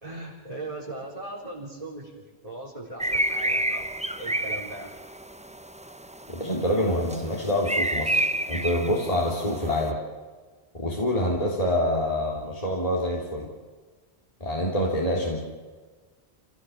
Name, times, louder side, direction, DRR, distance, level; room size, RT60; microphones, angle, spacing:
voice 1, 0.0-2.1 2.4-3.8 4.2-4.9, right 2 dB, 35° right, -5 dB, 4.3 m, -38 dB
sound 1, 3.0-9.9, right 1 dB, 10° right, 0.7 m, -30 dB
voice 2, 6.3-10.0 10.7-13.5 14.4-15.4, left 1 dB, 35° left, -3 dB, 3.4 m, -26 dB
28.5 x 17.0 x 7.3 m, 1.4 s
omnidirectional pair, 1.1 m